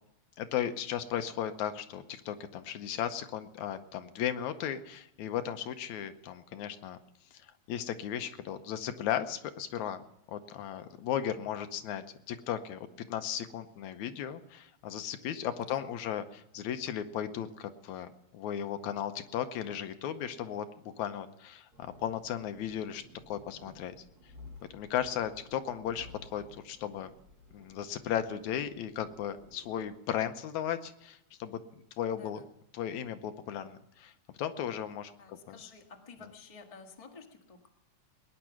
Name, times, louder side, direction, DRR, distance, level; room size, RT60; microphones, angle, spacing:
voice 1, 0.4-7.0 7.4-10.0 10.3-20.7 21.0-23.9 24.7-27.1 27.5-31.6 32.0-32.4 32.7-34.1 34.4-35.6 36.2-36.3, left 10 dB, 80° left, 9 dB, 2.2 m, -36 dB
sound 1, 21.7-29.9, left 2 dB, 35° right, 2.3 m, -55 dB
voice 2, 35.2-37.6, left 5 dB, 20° left, 2 dB, 1.0 m, -51 dB
20.0 x 10.0 x 5.9 m, 0.81 s
omnidirectional pair, 3.4 m